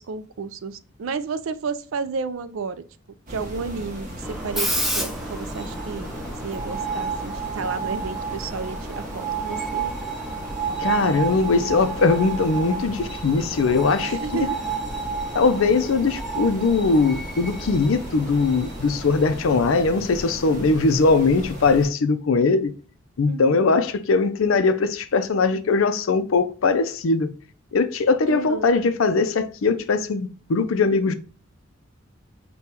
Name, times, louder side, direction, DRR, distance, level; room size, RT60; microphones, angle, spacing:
voice 1, 0.0-2.8 3.3-6.1 6.4-9.9 14.0-14.6 20.5-20.7 23.3-23.9 28.3-28.8, right 5 dB, 75° right, 0.4 m, -32 dB
sound 1, 3.3-21.9, equal, 40° right, 1.1 m, -36 dB
Screech, 4.2-20.8, right 4 dB, ahead, 0.5 m, -31 dB
voice 2, 10.8-14.2 15.3-22.7 23.2-27.3 27.7-31.1, left 4 dB, 80° left, 0.5 m, -20 dB
5.2 x 2.3 x 2.8 m
head